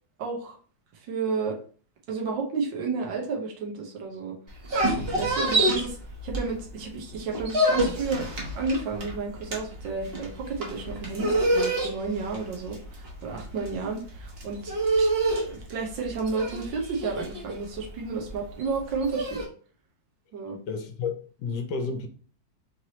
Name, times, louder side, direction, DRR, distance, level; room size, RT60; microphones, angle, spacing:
voice 1, 0.2-0.6 1.1-1.6 2.1-4.3 5.2-6.0 6.2-19.4 20.3-20.6, right 4 dB, 85° right, 1.7 m, -32 dB
sound 1, 4.5-6.8 7.1-19.4, right 1 dB, 40° right, 1.0 m, -27 dB
voice 2, 20.7-22.1, left 4 dB, 70° left, 1.2 m, -31 dB
4.5 x 3.1 x 2.8 m
omnidirectional pair, 2.0 m